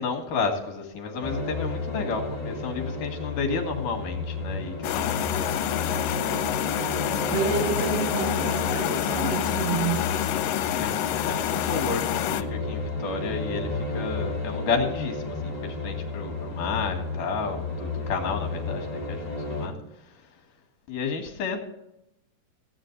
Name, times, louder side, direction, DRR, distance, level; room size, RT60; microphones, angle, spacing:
voice 1, 0.0-5.8 10.3-19.7 20.9-21.6, left 4 dB, 70° left, 4 dB, 3.3 m, -31 dB
sound 1, 1.2-19.7, left 3 dB, 15° left, 1.5 m, -32 dB
sound 2, 4.8-12.4, left 12 dB, 90° left, 2.3 m, -27 dB
voice 2, 7.3-10.1, right 7 dB, 75° right, 3 dB, 2.6 m, -29 dB
17.0 x 8.8 x 3.9 m, 0.86 s
omnidirectional pair, 3.9 m